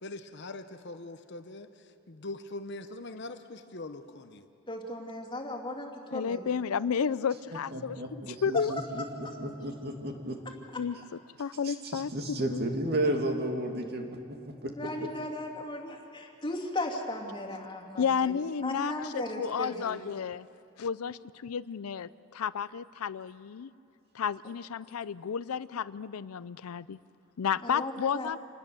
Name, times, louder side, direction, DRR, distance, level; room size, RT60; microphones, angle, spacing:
voice 1, 0.0-4.4, left 2 dB, 50° left, 9 dB, 0.9 m, -42 dB
voice 2, 4.7-6.5 8.5-8.7 9.2-9.4 10.7-10.8 14.8-18.3 18.6-20.0 27.6-28.3, left 1 dB, 20° left, 0 dB, 2.6 m, -36 dB
voice 3, 6.1-8.0 8.3-8.7 10.8-12.6 18.0-20.5 20.8-23.7 24.1-27.0 27.4-28.4, left 7 dB, 90° left, 17 dB, 0.5 m, -32 dB
voice 4, 7.7-10.4 11.6-14.1 14.5-14.7, right 1 dB, 50° right, 2 dB, 2.5 m, -33 dB
27.5 x 19.5 x 6.9 m, 2.6 s
head